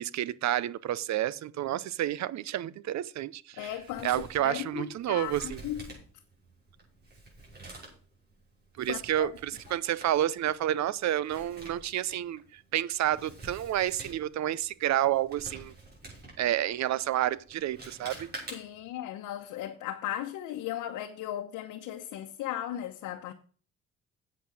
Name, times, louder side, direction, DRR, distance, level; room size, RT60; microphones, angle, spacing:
voice 1, 0.0-3.7 4.0-5.6 8.8-15.7 16.4-18.3, right 12 dB, 65° right, 0.6 m, -30 dB
voice 2, 3.6-6.0 8.9-9.3 18.5-23.3, left 12 dB, 90° left, 1.0 m, -37 dB
Male speech man speaking, 3.6-18.9, right 2 dB, 35° right, 6.2 m, -49 dB
8.2 x 8.2 x 6.3 m
cardioid pair, 90°, 30 cm